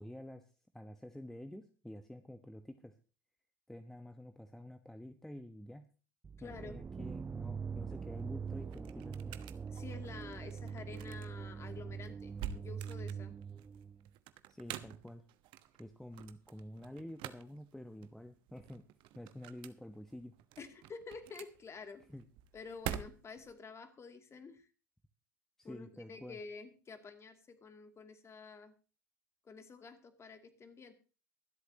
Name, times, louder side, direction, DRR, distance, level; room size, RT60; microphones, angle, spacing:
voice 1, 0.0-2.9 3.7-5.9 6.4-9.4 14.5-15.2 15.8-18.8 19.1-20.3 22.1-22.2 25.6-26.4, left 1 dB, 5° left, 8 dB, 1.0 m, -49 dB
sound 1, 6.2-14.1, right 6 dB, 20° right, 0.5 m, -43 dB
voice 2, 6.4-6.8 9.7-13.3 20.6-22.0 22.5-24.7 25.6-28.7 29.4-30.9, left 4 dB, 25° left, 7 dB, 2.5 m, -49 dB
sound 2, 8.0-23.5, right 11 dB, 50° right, 1.1 m, -48 dB
24.0 x 8.1 x 2.9 m, 0.36 s
hypercardioid pair, 80°, 10 cm